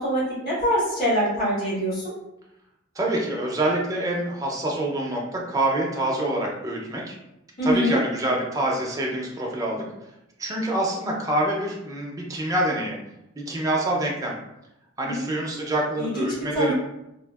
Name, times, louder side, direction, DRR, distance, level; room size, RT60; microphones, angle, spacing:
voice 1, 0.0-2.1 7.6-8.0 15.0-15.6 16.0-16.2 16.5-16.7, equal, 50° left, -9 dB, 1.3 m, -24 dB
voice 2, 2.9-7.2 7.6-9.8 10.4-13.0 13.4-14.4 15.0-16.7, right 1 dB, 15° right, -2 dB, 0.5 m, -26 dB
3.4 x 2.4 x 2.3 m, 0.86 s
head